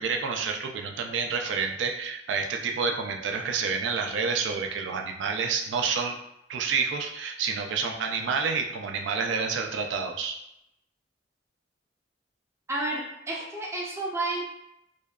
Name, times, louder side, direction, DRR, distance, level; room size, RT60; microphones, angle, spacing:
voice 1, 0.0-6.2 6.5-10.4, right 5 dB, 85° right, 3 dB, 0.3 m, -29 dB
voice 2, 12.7-14.5, right 2 dB, 15° right, -2 dB, 0.4 m, -31 dB
2.6 x 2.2 x 2.2 m, 0.82 s
head